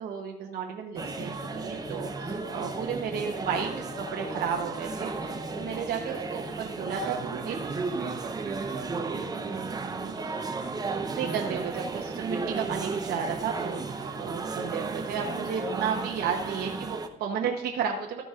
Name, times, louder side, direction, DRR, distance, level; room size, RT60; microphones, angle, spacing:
voice 1, 0.0-7.1 7.5-7.6 10.0-10.1 11.2-13.8 14.2-18.2, right 7 dB, 65° right, 2 dB, 0.9 m, -33 dB
sound 1, 0.9-5.8, left 6 dB, 85° left, 0.8 m, -46 dB
sound 2, 1.0-17.1, right 4 dB, 20° right, 0.7 m, -34 dB
voice 2, 7.0-10.3 14.0-15.0 16.4-16.7, right 7 dB, 90° right, 3 dB, 1.3 m, -42 dB
13.0 x 6.9 x 2.4 m, 0.83 s
cardioid pair, 110°, 17 cm